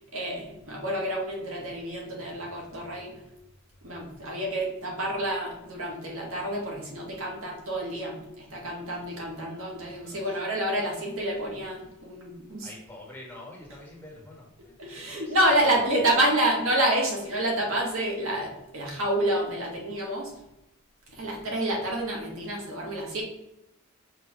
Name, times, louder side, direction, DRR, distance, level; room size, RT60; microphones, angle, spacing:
voice 1, 0.1-3.1 3.8-12.7 14.8-20.3 21.1-23.2, right 1 dB, 65° right, -1 dB, 1.6 m, -28 dB
voice 2, 9.8-10.4 12.6-14.7 15.0-15.3 15.8-16.0, left 1 dB, 10° left, -3 dB, 1.6 m, -47 dB
5.6 x 3.4 x 5.3 m, 0.87 s
head